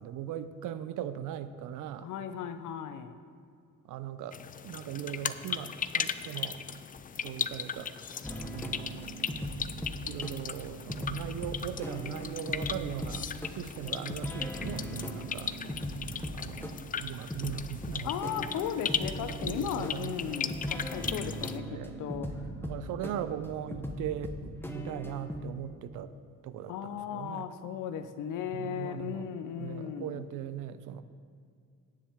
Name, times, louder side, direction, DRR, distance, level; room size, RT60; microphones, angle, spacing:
voice 1, 0.0-2.1 3.8-4.4 4.6-6.6 7.2-7.9 8.3-9.1 10.0-15.5 16.3-18.5 19.3-20.4 21.7-22.0 22.6-26.1 26.4-27.5 28.4-29.3 29.6-31.0, right 10 dB, 85° right, 13 dB, 0.6 m, -39 dB
voice 2, 2.0-3.2 18.0-22.3 26.7-30.2, left 8 dB, 85° left, 10 dB, 0.7 m, -36 dB
sound 1, 4.3-21.6, left 7 dB, 30° left, 0.4 m, -38 dB
sound 2, 8.2-25.4, equal, 5° left, 1.1 m, -39 dB
17.5 x 7.3 x 3.6 m, 2.2 s
cardioid pair, 90°, 30 cm